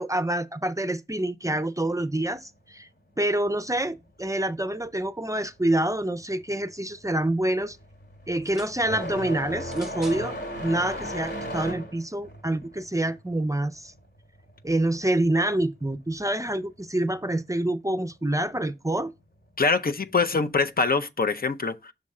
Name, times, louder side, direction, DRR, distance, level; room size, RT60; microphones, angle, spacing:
voice 1, 0.0-2.9 3.2-7.8 8.3-10.3 10.6-13.9 14.6-19.1, right 1 dB, 20° right, 0.4 m, -27 dB
sound 1, 6.2-6.5 6.8-15.2 15.5-16.5 17.5-17.6 18.4-18.5 20.2-20.4, equal, 80° left, 2.1 m, -36 dB
sound 2, 8.3-8.8 9.7-10.3 11.2-11.3, right 1 dB, 5° right, 1.0 m, -45 dB
voice 2, 19.6-21.9, left 4 dB, 60° left, 0.6 m, -24 dB
6.4 x 3.6 x 4.2 m
wide cardioid pair, 55°, 17 cm